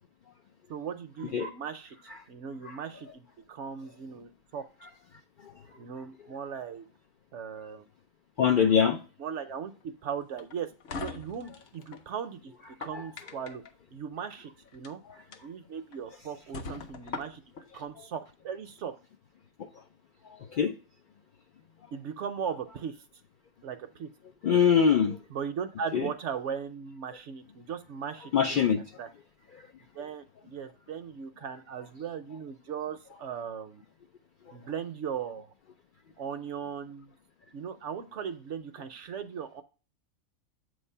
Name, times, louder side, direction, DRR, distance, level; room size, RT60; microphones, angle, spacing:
voice 1, 0.7-2.0 2.3-4.6 5.8-6.8 7.3-7.8 9.2-10.7 11.0-12.5 12.8-13.6 13.9-15.0 15.4-17.4 17.7-18.9 21.9-23.0 23.6-24.1 25.3-29.1 29.9-33.8 34.5-35.5 36.2-37.1 37.5-39.6, right 7 dB, 65° right, 9 dB, 0.8 m, -38 dB
voice 2, 8.4-9.0 12.9-13.0 20.5-20.7 24.4-25.2 25.9-26.1 28.3-28.8, left 7 dB, 90° left, 4 dB, 0.4 m, -23 dB
sound 1, 10.4-12.0 12.6-13.7 14.7-14.9 15.3-15.4 15.9-16.0 16.5-17.6, left 4 dB, 55° left, 0.9 m, -40 dB
7.8 x 3.2 x 5.4 m, 0.35 s
omnidirectional pair, 1.5 m